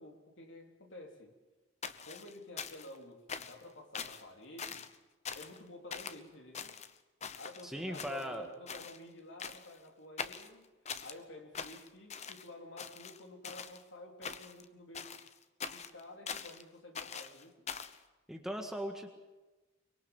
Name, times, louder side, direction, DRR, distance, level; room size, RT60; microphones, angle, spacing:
voice 1, 0.0-1.3 2.0-4.9 5.4-6.8 7.4-15.2 15.7-17.7, left 1 dB, 65° left, 2 dB, 3.6 m, -51 dB
sound 1, 1.8-3.0 3.3-3.6 3.9-4.2 4.6-5.0 5.3-5.6 5.9-6.2 6.5-7.6 7.9-8.4 8.7-9.0 9.4-9.8 10.2-11.2 11.5-12.5 12.8-13.8 14.2-14.6 14.9-16.6 16.9-18.0, left 6 dB, 35° left, 0.9 m, -43 dB
voice 2, 7.6-8.5 18.3-19.1, equal, ahead, 3 dB, 1.7 m, -39 dB
24.0 x 22.0 x 7.3 m, 1.1 s
head